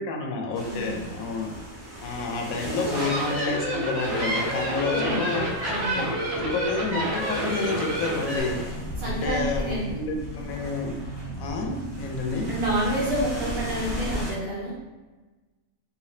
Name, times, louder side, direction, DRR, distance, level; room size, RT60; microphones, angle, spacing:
voice 1, 0.0-1.5 2.0-5.4 5.9-6.0 6.3-8.7 9.0-10.9 11.4-12.5, left 3 dB, 85° left, 1 dB, 1.0 m, -29 dB
sound 1, 0.5-14.3, equal, 10° left, 1.3 m, -36 dB
voice 2, 0.7-1.1 4.8-5.3 5.7-6.1 9.0-10.0 12.5-14.7, right 1 dB, 50° right, -6 dB, 1.1 m, -29 dB
sound 2, 2.7-8.4, equal, 25° right, 0.6 m, -28 dB
3.2 x 2.5 x 2.7 m, 1.2 s
omnidirectional pair, 1.4 m